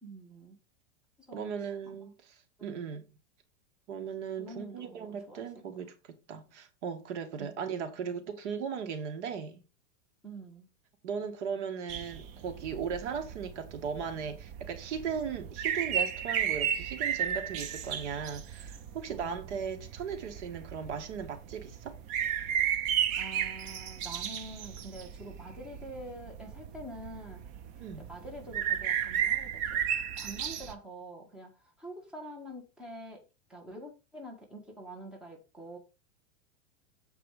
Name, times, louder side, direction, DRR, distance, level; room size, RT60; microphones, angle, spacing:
voice 1, 0.0-0.6 1.3-1.5 2.6-3.0 4.4-5.5 7.4-7.5 10.2-10.7 19.1-19.6 23.2-27.4 27.8-31.5 31.8-33.2 33.5-35.8, right 1 dB, ahead, 1.7 m, -46 dB
voice 2, 1.3-2.4 2.6-3.1 3.9-9.6 11.0-22.0 27.8-28.1, right 6 dB, 60° right, 1.9 m, -37 dB
sound 1, 11.9-30.7, right 9 dB, 20° right, 0.3 m, -34 dB
7.7 x 4.7 x 4.9 m
supercardioid pair, 150°, 39 cm